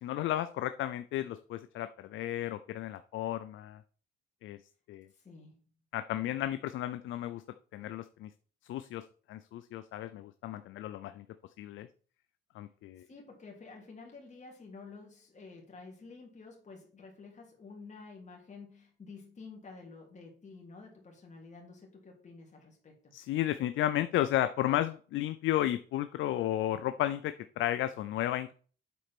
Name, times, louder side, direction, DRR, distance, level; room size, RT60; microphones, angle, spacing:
voice 1, 0.0-3.8 4.4-4.6 4.9-5.1 5.9-7.4 7.7-8.3 8.7-11.2 11.6-11.9 12.5-13.0 23.1-28.5, left 13 dB, 80° left, 11 dB, 0.5 m, -33 dB
voice 2, 5.1-5.6 13.0-23.1, left 4 dB, 35° left, 0 dB, 2.9 m, -50 dB
8.4 x 4.3 x 6.0 m, 0.42 s
cardioid pair, 90°, 20 cm